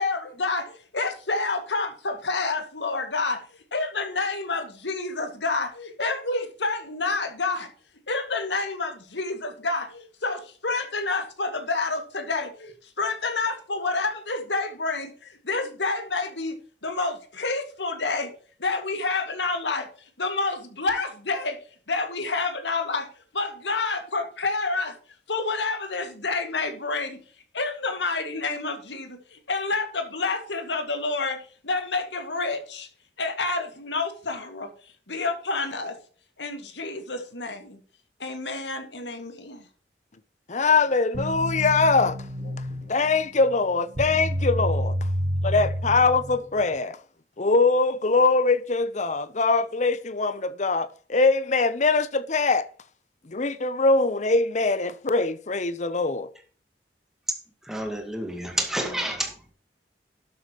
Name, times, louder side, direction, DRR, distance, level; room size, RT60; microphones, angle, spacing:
voice 1, 0.0-3.4 3.7-7.7 8.1-18.3 18.6-19.9 20.2-21.6 21.9-23.1 23.3-25.0 25.3-27.2 27.5-31.4 31.6-32.9 33.2-34.7 35.1-36.0 36.4-37.8 38.2-39.6, left 3 dB, 85° left, 2.2 m, -28 dB
voice 2, 40.5-44.9 45.4-47.0 47.4-52.7 53.3-56.3, left 3 dB, 45° left, 0.8 m, -23 dB
sound 1, 41.1-46.7, equal, 50° right, 1.7 m, -29 dB
voice 3, 57.6-59.5, right 1 dB, 5° right, 2.1 m, -29 dB
12.0 x 8.7 x 3.1 m
head